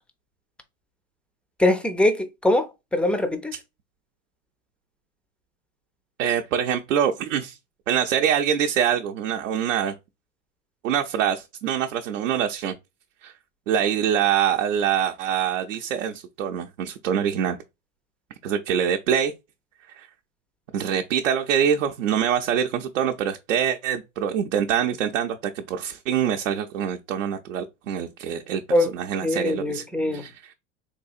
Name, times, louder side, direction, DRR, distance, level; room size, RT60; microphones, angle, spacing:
voice 1, 1.6-3.6 28.7-28.9 29.2-30.3, left 1 dB, 5° left, 0.3 m, -22 dB
voice 2, 6.2-7.6 7.9-9.9 10.8-12.7 13.2-13.3 13.7-17.6 18.4-19.3 19.9-20.1 20.7-29.8 30.1-30.3, right 9 dB, 85° right, 0.6 m, -24 dB
3.9 x 2.7 x 2.4 m
hypercardioid pair, 100°, 38 cm